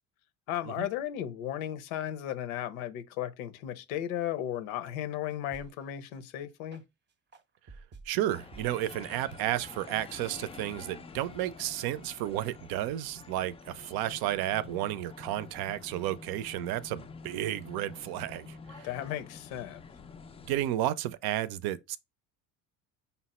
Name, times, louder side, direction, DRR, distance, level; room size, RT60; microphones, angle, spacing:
voice 1, 0.5-6.8 18.8-19.8, left 11 dB, 90° left, 0.8 m, -35 dB
sound 1, 5.3-5.8 6.1-6.2 6.7-6.8 7.3-8.1 8.5-8.7 9.1-9.2 9.7-9.8 10.3-10.4, right 3 dB, 30° right, 0.6 m, -50 dB
voice 2, 8.1-18.9 20.5-22.0, right 13 dB, 65° right, 0.6 m, -32 dB
sound 2, 8.3-20.7, left 5 dB, 15° left, 0.3 m, -48 dB
5.4 x 2.1 x 4.2 m
supercardioid pair, 75°, 39 cm